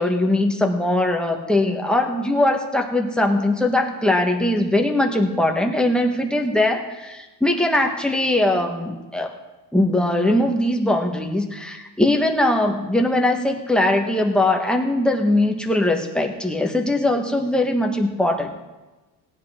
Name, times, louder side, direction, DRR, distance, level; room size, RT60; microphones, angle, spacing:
voice 1, 0.0-9.3 9.7-18.5, left 1 dB, ahead, 2 dB, 1.3 m, -21 dB
18.5 x 10.5 x 3.7 m, 1.1 s
cardioid pair, 135°, 36 cm